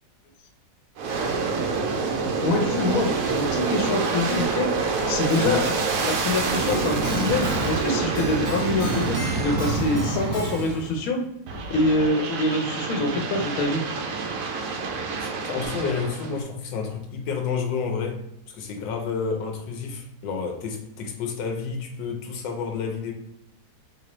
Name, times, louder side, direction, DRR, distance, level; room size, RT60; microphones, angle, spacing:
Aircraft, 1.0-11.0 11.5-16.4, right 4 dB, 70° right, 0.8 m, -27 dB
voice 1, 2.4-5.6 6.2-11.2 11.7-13.8, left 2 dB, 60° left, 2 dB, 1.1 m, -25 dB
Keyboard (musical), 5.3-11.0, left 1 dB, 30° left, 0.3 m, -37 dB
voice 2, 5.4-5.7 15.2-18.2 18.5-23.1, left 5 dB, 85° left, 3 dB, 1.3 m, -30 dB
3.7 x 2.8 x 3.0 m, 0.83 s
omnidirectional pair, 1.9 m